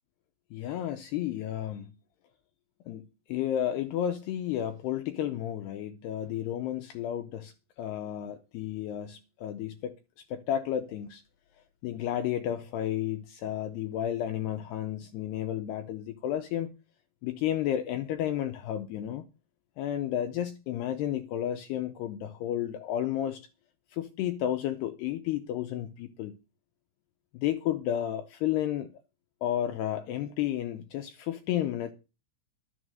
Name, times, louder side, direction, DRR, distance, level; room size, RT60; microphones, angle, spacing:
voice 1, 0.5-1.9 2.9-3.0 3.3-9.9 10.3-11.2 11.8-16.7 17.2-19.2 19.8-23.5 23.9-26.4 27.3-28.9 29.4-31.9, left 11 dB, 80° left, 2.4 m, -32 dB
12.5 x 7.2 x 6.2 m
omnidirectional pair, 5.7 m